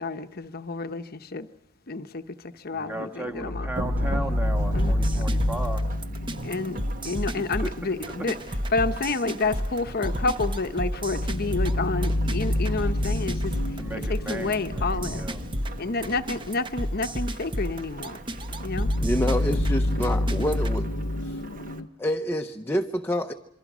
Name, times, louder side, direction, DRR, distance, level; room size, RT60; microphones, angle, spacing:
voice 1, 0.0-1.5 1.9-3.7 4.7-5.2 6.4-6.8 7.0-8.3 8.7-13.8 14.1-15.2 15.8-18.2 18.6-18.9, left 3 dB, 45° left, 9 dB, 0.9 m, -29 dB
voice 2, 2.7-5.8 7.4-7.7 8.2-8.3 13.8-15.4, right 1 dB, 10° right, 5 dB, 1.8 m, -36 dB
sound 1, 3.4-9.3 9.7-9.8 10.8-17.3 17.8-18.0 18.3-21.9, left 1 dB, 80° left, 1.0 m, -29 dB
Thunderstorm / Rain, 3.8-21.8, right 1 dB, 40° right, 1.4 m, -39 dB
sound 2, 4.8-20.8, equal, 25° right, 1.1 m, -32 dB
voice 3, 19.0-20.9 21.3-21.4 22.0-23.3, equal, 10° left, 5 dB, 0.8 m, -27 dB
27.5 x 24.5 x 6.2 m, 0.83 s
head